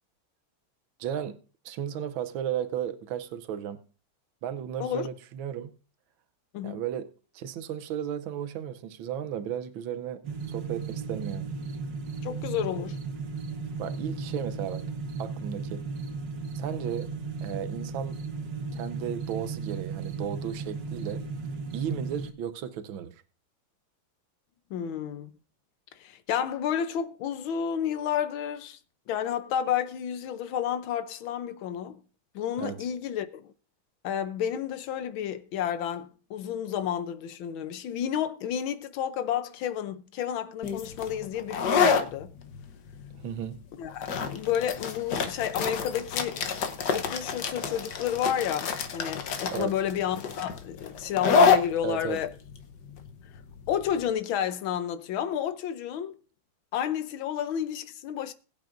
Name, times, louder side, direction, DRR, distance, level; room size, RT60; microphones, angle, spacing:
voice 1, 1.0-1.4 1.6-3.8 4.4-5.7 6.6-10.2 10.5-11.5 13.8-14.8 15.2-15.9 16.5-17.1 17.4-18.2 18.7-21.2 21.7-23.1 32.6-32.8 43.2-43.6 49.5-49.7 51.8-52.2, right 9 dB, 85° right, 1.6 m, -34 dB
sound 1, 10.2-22.3, right 4 dB, 65° right, 1.6 m, -35 dB
voice 2, 12.2-13.0 24.7-25.3 26.0-28.8 29.1-32.0 32.3-33.5 34.0-42.3 43.8-46.5 46.9-52.3 53.7-56.1 56.7-58.3, left 9 dB, 85° left, 1.5 m, -31 dB
sound 2, 40.6-54.0, left 5 dB, 65° left, 1.5 m, -28 dB
21.0 x 8.6 x 2.6 m
omnidirectional pair, 2.2 m